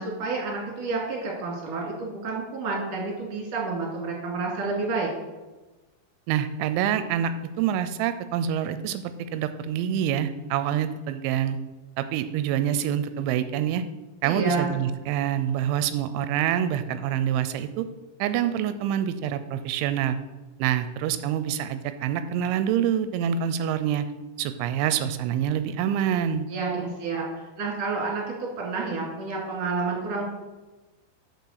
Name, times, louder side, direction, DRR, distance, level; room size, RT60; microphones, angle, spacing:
voice 1, 0.0-5.1 14.2-14.7 26.5-27.3 27.6-30.2, right 4 dB, 45° right, -2 dB, 2.6 m, -29 dB
voice 2, 6.3-11.6 12.0-13.8 14.2-17.9 18.2-20.2 20.6-24.1 24.4-26.5, right 9 dB, 90° right, 11 dB, 3.0 m, -26 dB
6.8 x 6.1 x 6.4 m, 1.1 s
omnidirectional pair, 5.3 m